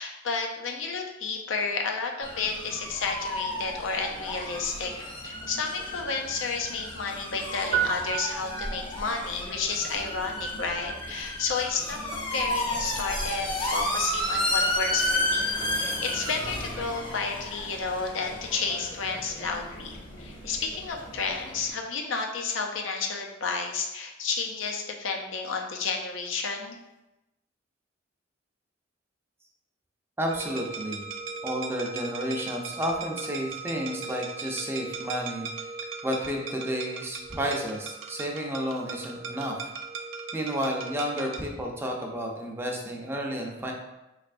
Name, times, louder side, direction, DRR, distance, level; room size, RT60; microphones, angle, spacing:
voice 1, 0.0-4.9 5.2-12.0 12.3-26.8, left 4 dB, 80° left, 2 dB, 0.5 m, -31 dB
sound 1, 2.2-21.7, left 1 dB, 25° left, 0.7 m, -32 dB
sound 2, 7.7-9.2, right 9 dB, 55° right, 0.8 m, -30 dB
voice 2, 30.2-31.0 31.4-35.7 36.0-39.6 40.3-43.7, equal, 10° right, 0 dB, 0.5 m, -31 dB
sound 3, 30.3-41.5, right 4 dB, 80° right, 0.4 m, -38 dB
4.0 x 3.2 x 2.5 m, 0.96 s
head